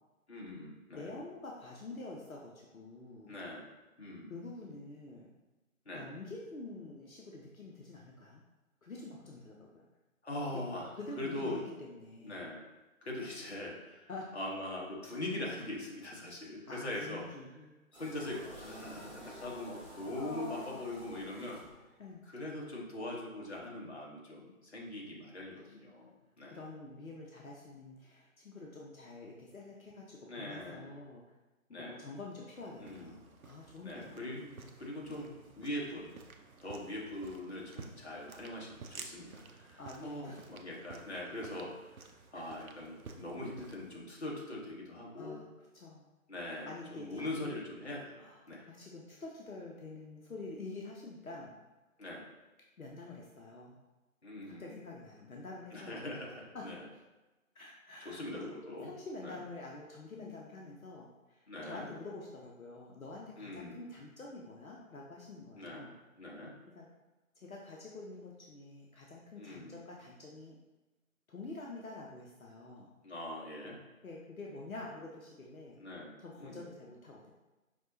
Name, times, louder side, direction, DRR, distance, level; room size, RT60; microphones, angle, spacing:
voice 1, 0.3-1.1 3.3-3.7 4.0-4.3 5.9-6.1 10.2-11.6 12.2-12.6 13.0-17.3 17.9-21.6 22.3-26.6 30.3-31.0 31.7-32.0 32.8-33.1 33.8-34.4 34.8-36.1 36.6-41.9 42.3-45.4 46.3-48.7 52.0-52.3 54.2-54.7 55.7-56.9 58.0-58.9 59.2-59.4 61.5-61.9 63.4-63.8 65.5-65.9 66.2-66.5 69.4-69.8 73.0-73.8 75.8-76.6, left 1 dB, 50° left, -3 dB, 1.0 m, -42 dB
voice 2, 0.9-3.3 4.3-5.3 5.9-8.4 8.8-9.8 11.0-12.5 14.1-14.2 16.2-16.3 16.7-17.8 20.1-21.0 22.0-22.2 25.7-25.8 26.4-31.2 31.7-34.7 35.1-35.3 39.8-40.4 42.3-42.5 45.1-45.5 45.7-46.1 46.6-47.5 48.2-48.4 48.7-51.5 52.8-53.8 54.6-56.0 56.5-56.6 57.5-58.5 58.8-65.9 66.7-66.9 67.4-70.6 71.3-72.9 74.0-75.8 76.2-77.3, left 2 dB, 75° left, -2 dB, 0.7 m, -47 dB
sound 1, 17.9-22.1, equal, 20° right, 1.0 m, -50 dB
sound 2, 32.5-44.0, right 4 dB, 80° right, 0.6 m, -53 dB
5.3 x 2.8 x 2.6 m, 1.1 s
figure-of-eight pair, 160°, 42 cm